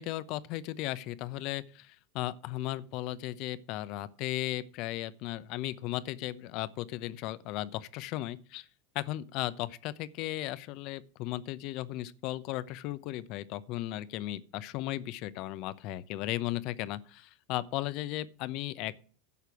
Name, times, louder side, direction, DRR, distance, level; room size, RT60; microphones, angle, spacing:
voice 1, 0.0-8.7 8.9-18.9, left 15 dB, 55° left, 0.8 m, -36 dB
11.0 x 6.7 x 6.0 m
hypercardioid pair, 105°, 0 cm